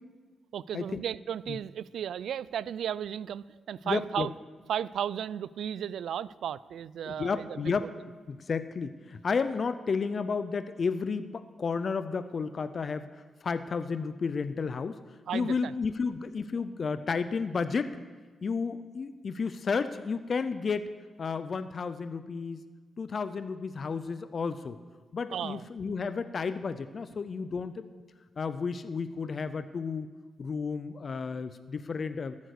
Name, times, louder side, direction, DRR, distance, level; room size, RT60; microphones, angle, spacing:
voice 1, 0.5-4.3 4.7-7.9 15.3-15.7 25.3-25.6, right 9 dB, 80° right, 20 dB, 0.3 m, -34 dB
voice 2, 3.8-4.3 7.1-7.9 8.3-13.1 13.4-15.0 15.3-17.9 18.4-20.9 21.2-22.6 23.0-24.8 25.1-27.9 28.4-30.1 30.4-32.4, left 5 dB, 50° left, 12 dB, 0.6 m, -32 dB
14.0 x 9.6 x 6.6 m, 1.4 s
cardioid pair, 75°, 0 cm